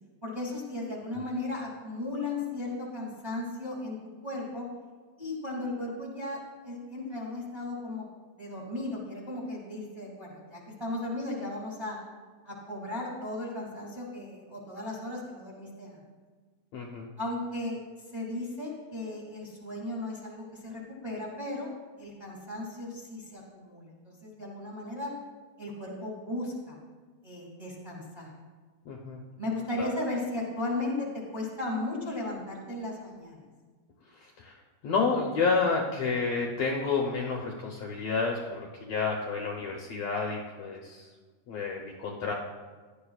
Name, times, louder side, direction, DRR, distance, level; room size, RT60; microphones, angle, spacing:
voice 1, 0.2-4.0 4.2-4.7 5.2-8.0 8.3-12.0 12.4-16.0 17.2-17.8 18.1-21.7 22.0-25.1 25.6-26.8 27.2-28.3 29.4-33.4, left 2 dB, 10° right, -3 dB, 2.1 m, -36 dB
voice 2, 16.7-17.1 28.8-29.2 29.8-29.9 34.2-34.6 34.8-41.1 41.5-42.3, left 4 dB, 65° left, -1 dB, 1.8 m, -30 dB
17.0 x 11.5 x 2.4 m, 1.4 s
omnidirectional pair, 3.8 m